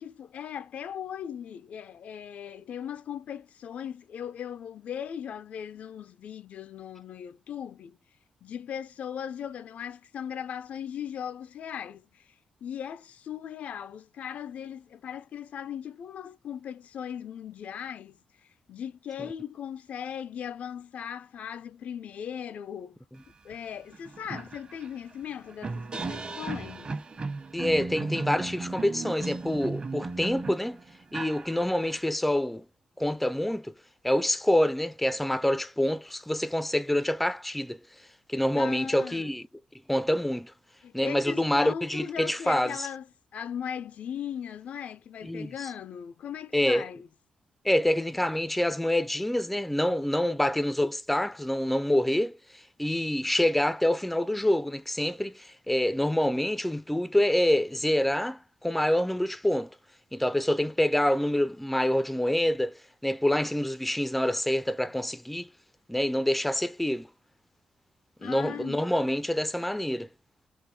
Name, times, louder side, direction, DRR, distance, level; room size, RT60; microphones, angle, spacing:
voice 1, 0.0-8.0 8.4-23.0 23.4-27.0 38.6-39.3 40.8-43.1 43.3-47.1 68.2-68.9, left 8 dB, 70° left, 0.4 m, -38 dB
sound 1, 23.5-23.6 23.9-32.0, right 3 dB, 40° right, 1.0 m, -36 dB
voice 2, 27.5-30.8 31.1-32.6 33.0-33.7 34.0-39.5 39.9-40.5 40.9-42.9 45.2-45.7 46.5-46.9 47.6-59.8 60.1-65.5 65.9-67.1 68.2-70.1, left 1 dB, 5° left, 0.4 m, -26 dB
3.7 x 2.9 x 2.6 m
cardioid pair, 90°, 3 cm